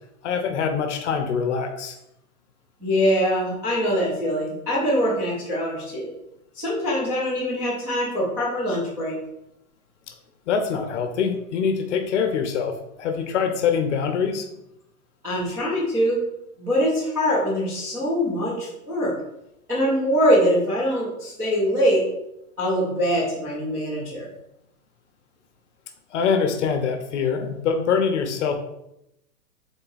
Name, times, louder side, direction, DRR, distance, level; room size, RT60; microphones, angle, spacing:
voice 1, 0.2-2.0 10.5-12.7 13.0-14.5 26.1-28.6, left 6 dB, 50° left, 7 dB, 0.7 m, -24 dB
voice 2, 2.8-6.1 6.5-9.1 15.2-16.2 16.6-19.1 19.7-22.1 22.6-24.3, equal, 5° right, -11 dB, 0.4 m, -23 dB
3.9 x 3.4 x 3.9 m, 0.82 s
hypercardioid pair, 145°, 44 cm